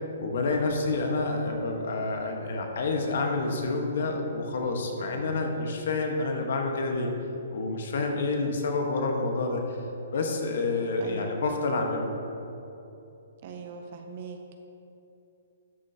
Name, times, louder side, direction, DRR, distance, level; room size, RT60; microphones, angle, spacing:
voice 1, 0.2-7.1 7.5-9.8 10.1-12.1, left 3 dB, 50° left, 2 dB, 1.2 m, -28 dB
voice 2, 11.0-11.4 13.4-14.4, right 6 dB, 35° right, 4 dB, 0.6 m, -40 dB
12.5 x 7.6 x 2.8 m, 2.8 s
hypercardioid pair, 175°, 0 cm